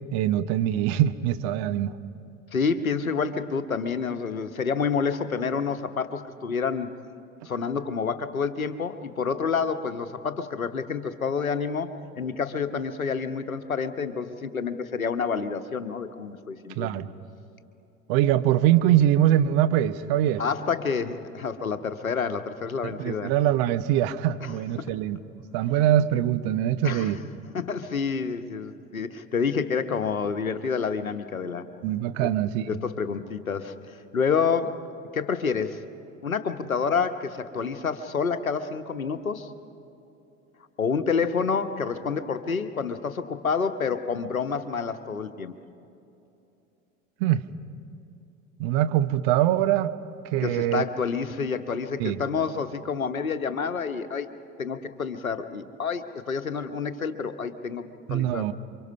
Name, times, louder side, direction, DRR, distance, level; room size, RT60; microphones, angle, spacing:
voice 1, 0.1-2.0 16.8-17.1 18.1-20.4 22.8-25.2 25.5-27.2 31.8-32.7 47.2-47.5 48.6-49.9 50.3-50.9 52.0-52.2 58.1-58.5, right 12 dB, 45° right, 12 dB, 1.0 m, -23 dB
voice 2, 2.5-6.9 7.4-17.0 20.4-23.3 24.4-24.9 26.8-27.1 27.5-31.7 32.2-32.3 32.7-34.8 35.1-35.8 36.2-39.5 40.8-45.5 50.4-54.3 54.6-58.5, left 5 dB, 80° left, 10 dB, 1.1 m, -28 dB
28.5 x 24.0 x 5.5 m, 2.8 s
figure-of-eight pair, 75°, 41 cm